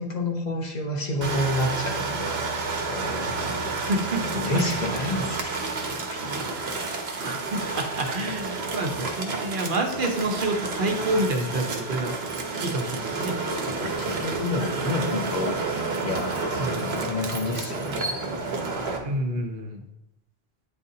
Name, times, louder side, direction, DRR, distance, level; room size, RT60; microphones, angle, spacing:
voice 1, 0.0-3.3 4.3-5.7 6.1-6.7 13.7-15.6 16.0-18.5, left 2 dB, 45° left, 1 dB, 0.9 m, -30 dB
sound 1, 1.2-19.0, right 3 dB, 80° right, 1.1 m, -30 dB
voice 2, 3.7-4.6 7.2-12.1 12.6-13.4 16.6-16.9 19.0-19.8, right 1 dB, 55° right, 3 dB, 0.9 m, -28 dB
8.9 x 3.9 x 2.7 m, 0.90 s
omnidirectional pair, 1.1 m